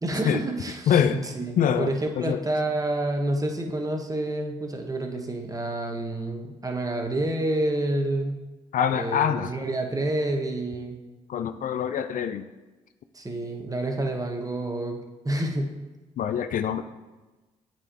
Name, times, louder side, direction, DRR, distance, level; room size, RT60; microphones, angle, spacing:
voice 1, 0.0-8.4 8.9-11.0 13.1-15.7, right 1 dB, 25° right, 3 dB, 1.1 m, -28 dB
voice 2, 0.9-1.2 1.6-1.9 2.2-2.4 8.7-9.5 11.3-12.4 16.2-16.8, left 8 dB, 60° left, 11 dB, 0.4 m, -24 dB
8.6 x 4.3 x 2.9 m, 1.2 s
hypercardioid pair, 45°, 15 cm